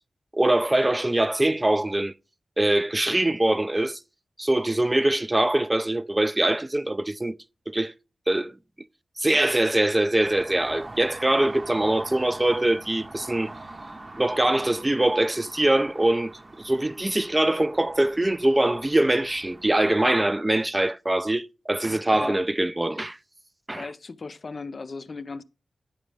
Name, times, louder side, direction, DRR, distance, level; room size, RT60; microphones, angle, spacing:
voice 1, 0.3-2.1 2.6-4.0 4.4-7.3 7.7-7.9 8.3-8.6 9.2-13.5 14.2-16.3 16.6-23.2 23.7-23.9, right 1 dB, 25° right, 0.3 m, -23 dB
sound 1, 10.2-19.9, right 2 dB, 45° right, 0.8 m, -43 dB
voice 2, 23.7-25.4, left 4 dB, 60° left, 0.4 m, -37 dB
8.8 x 5.0 x 3.2 m
cardioid pair, 40°, 0 cm